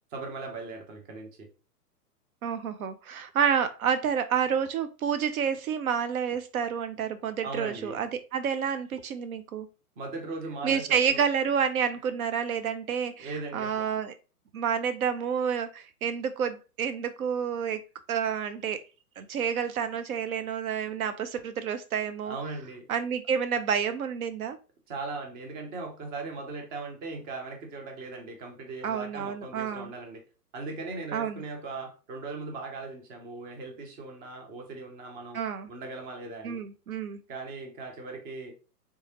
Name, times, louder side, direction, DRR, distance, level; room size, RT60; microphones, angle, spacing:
voice 1, 0.1-1.5 7.4-8.0 10.0-11.2 13.2-13.8 22.2-22.8 24.9-30.2 30.5-35.4 35.7-36.6 37.3-38.5, right 3 dB, 20° right, 0.6 m, -38 dB
voice 2, 2.4-9.7 10.6-14.1 14.5-17.8 18.1-18.8 19.2-22.4 22.9-24.6 28.8-29.9 31.1-31.4 35.3-35.7 36.4-37.2, right 7 dB, 65° right, 0.6 m, -29 dB
3.3 x 3.1 x 2.8 m
hypercardioid pair, 120°, 46 cm